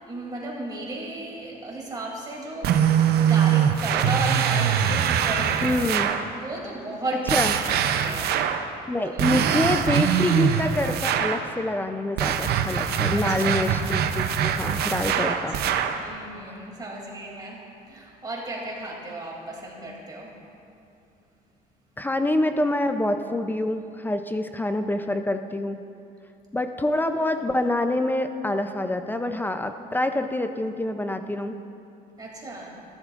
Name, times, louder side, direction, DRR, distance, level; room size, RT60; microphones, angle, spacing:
voice 1, 0.1-5.7 6.3-8.4 9.1-9.3 13.1-13.7 15.1-20.3 32.2-32.8, right 2 dB, 25° right, -2 dB, 2.7 m, -35 dB
sound 1, 2.6-6.3 7.3-8.7 9.2-11.5 12.2-16.0, right 8 dB, 70° right, 0.6 m, -23 dB
voice 2, 5.6-6.1 7.3-7.5 8.9-15.5 22.0-25.8 26.5-31.6, left 1 dB, 10° left, 8 dB, 0.5 m, -26 dB
14.0 x 11.5 x 2.5 m, 2.7 s
cardioid pair, 110°, 17 cm